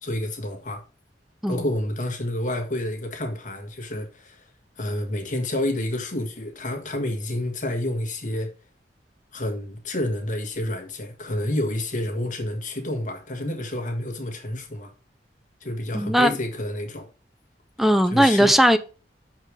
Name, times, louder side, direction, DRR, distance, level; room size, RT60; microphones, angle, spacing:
voice 1, 0.0-0.8 1.5-4.4 4.8-8.5 9.3-14.9 15.6-17.1 18.1-18.5, left 1 dB, 45° left, 1.6 m, -29 dB
voice 2, 15.9-16.3 17.8-18.8, equal, ahead, 0.4 m, -18 dB
6.4 x 4.4 x 4.7 m
head